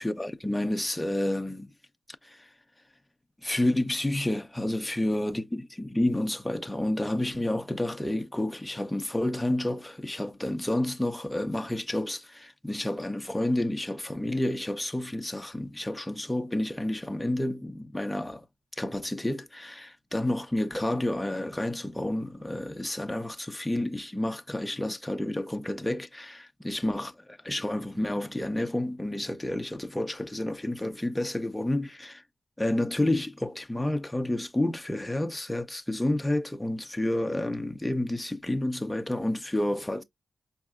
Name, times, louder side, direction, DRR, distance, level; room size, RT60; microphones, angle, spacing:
voice 1, 0.0-1.7 2.2-2.5 3.4-18.4 18.8-32.2 32.6-40.0, left 1 dB, 5° left, 0.6 m, -30 dB
5.3 x 2.8 x 2.4 m
wide cardioid pair, 115°, 0 cm